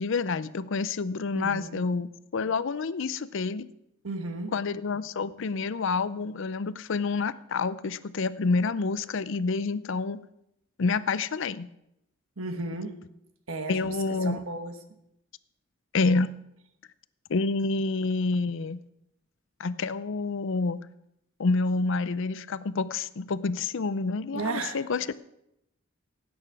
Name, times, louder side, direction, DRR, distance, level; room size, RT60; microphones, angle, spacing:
voice 1, 0.0-3.7 4.5-10.2 10.8-11.7 13.7-14.4 15.9-16.3 17.3-18.8 19.6-20.9 21.4-25.1, left 4 dB, 65° left, 16 dB, 0.5 m, -28 dB
voice 2, 1.3-1.8 4.0-4.5 12.4-13.0 13.5-13.8 14.2-14.7 24.3-24.8, right 2 dB, 85° right, 7 dB, 1.4 m, -33 dB
16.5 x 8.8 x 4.7 m, 0.82 s
head